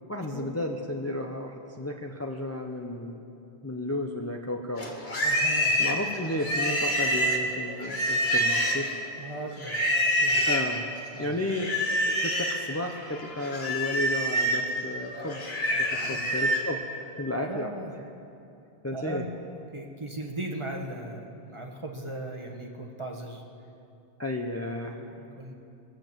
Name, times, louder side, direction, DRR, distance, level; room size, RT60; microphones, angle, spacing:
voice 1, 0.1-3.2 3.6-4.9 5.8-9.0 10.5-10.8 11.2-11.7 12.1-15.4 15.7-17.7 18.8-19.3 24.2-25.0, left 1 dB, 15° left, 2 dB, 0.7 m, -33 dB
Livestock farm animals working animals, 4.8-9.0 9.6-10.7 11.5-12.6 13.0-16.7, equal, 70° left, 2.3 m, -26 dB
voice 2, 5.2-5.8 9.2-9.8 10.0-10.4 11.1-11.4 15.9-16.2 17.5-17.9 18.9-19.2 19.5-23.4 24.6-24.9 25.4-25.5, right 1 dB, 30° right, 1 dB, 1.4 m, -38 dB
22.5 x 7.7 x 7.5 m, 2.7 s
omnidirectional pair, 1.1 m